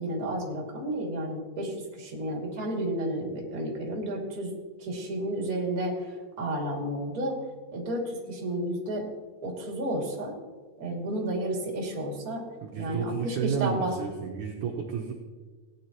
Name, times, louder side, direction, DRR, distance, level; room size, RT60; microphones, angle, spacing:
voice 1, 0.0-4.5 4.8-7.4 7.7-9.1 9.4-10.4 10.8-12.4 12.8-14.0, right 1 dB, 25° right, -1 dB, 2.2 m, -31 dB
voice 2, 12.6-15.1, right 7 dB, 70° right, 1 dB, 2.0 m, -31 dB
18.0 x 9.8 x 3.0 m, 1.4 s
omnidirectional pair, 4.5 m